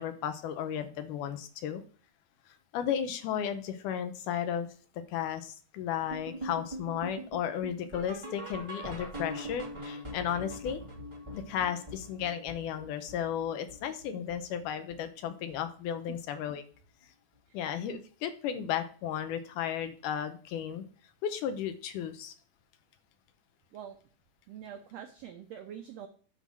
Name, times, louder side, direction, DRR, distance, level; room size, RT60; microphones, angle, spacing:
voice 1, 0.0-1.8 2.7-4.7 5.1-10.8 11.3-16.6 17.5-20.8 21.2-22.3, left 9 dB, 75° left, 8 dB, 2.4 m, -34 dB
sound 1, 6.1-15.2 15.5-15.8 16.1-16.2 16.7-16.8 17.3-17.4, equal, 15° right, 1.3 m, -43 dB
voice 2, 24.5-26.1, right 9 dB, 80° right, 6 dB, 1.5 m, -45 dB
9.5 x 3.9 x 6.2 m, 0.42 s
omnidirectional pair, 3.9 m